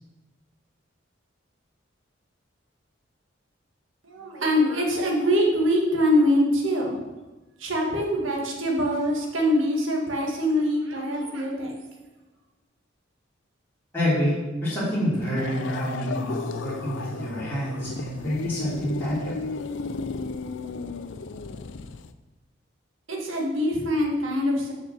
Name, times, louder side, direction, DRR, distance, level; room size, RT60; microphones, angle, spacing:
voice 1, 4.0-7.0 7.6-11.8 23.1-24.7, equal, 90° right, -1 dB, 1.9 m, -24 dB
voice 2, 13.9-14.3 14.6-19.4, equal, 10° left, -11 dB, 3.4 m, -27 dB
sound 1, 15.4-22.1, left 4 dB, 70° left, 0.5 m, -34 dB
6.6 x 6.0 x 6.8 m, 1.1 s
head